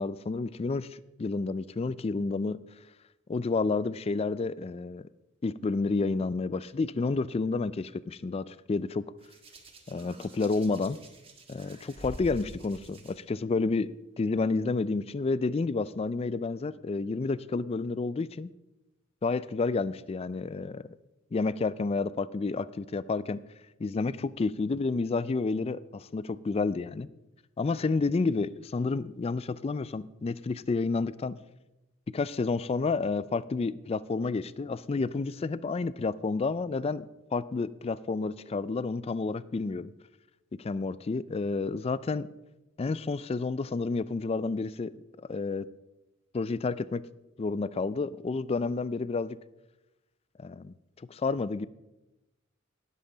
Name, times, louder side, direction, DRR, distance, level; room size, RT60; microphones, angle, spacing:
voice 1, 0.0-2.6 3.3-5.1 5.4-9.1 9.9-11.0 11.5-18.5 19.2-20.9 21.3-23.4 23.8-27.1 27.6-31.4 32.1-37.1 37.3-39.9 40.6-42.3 42.8-45.7 46.3-47.0 47.4-49.4 50.4-50.7 51.1-51.7, left 3 dB, 30° left, 17 dB, 0.3 m, -30 dB
Hands, 9.2-13.1 14.2-14.4, right 1 dB, 30° right, 1.6 m, -47 dB
18.5 x 7.5 x 3.9 m, 1.0 s
head